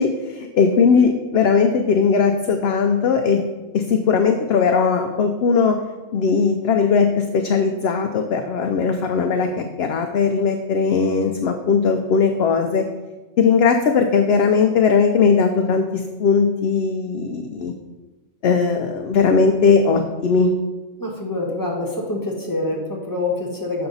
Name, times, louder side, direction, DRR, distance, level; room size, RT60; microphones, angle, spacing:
voice 1, 0.0-3.4 3.7-5.8 6.1-12.9 13.4-17.7 18.4-20.5, left 5 dB, 65° left, 5 dB, 0.7 m, -18 dB
voice 2, 21.0-23.9, left 2 dB, 15° left, -2 dB, 1.1 m, -26 dB
6.9 x 5.6 x 3.9 m, 1.2 s
omnidirectional pair, 1.3 m